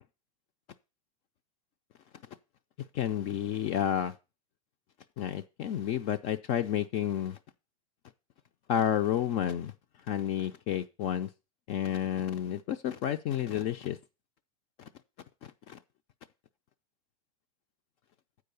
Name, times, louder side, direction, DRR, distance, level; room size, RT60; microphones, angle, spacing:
voice 1, 2.9-4.1 5.2-7.4 8.7-9.7 10.1-11.3 11.7-14.0 14.8-14.9 15.4-15.8, left 10 dB, 35° left, 0.5 m, -30 dB
8.3 x 4.8 x 6.7 m
supercardioid pair, 160°, 18 cm